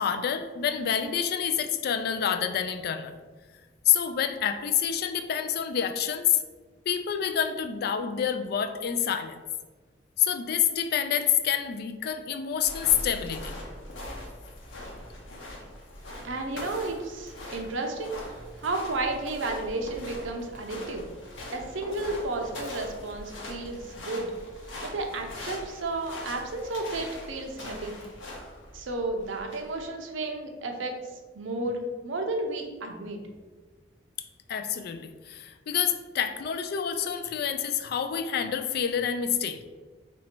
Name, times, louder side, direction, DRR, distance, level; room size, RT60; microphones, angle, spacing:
voice 1, 0.0-3.1 3.9-6.4 6.9-9.4 10.2-13.5 34.5-39.6, left 8 dB, 55° left, 8 dB, 0.3 m, -27 dB
sound 1, 12.6-29.9, left 1 dB, 80° left, 0.9 m, -42 dB
voice 2, 16.2-18.2 18.6-21.0 21.5-24.3 24.8-28.0 28.7-33.2, right 2 dB, 85° right, 3 dB, 0.6 m, -32 dB
3.0 x 2.7 x 4.3 m, 1.3 s
head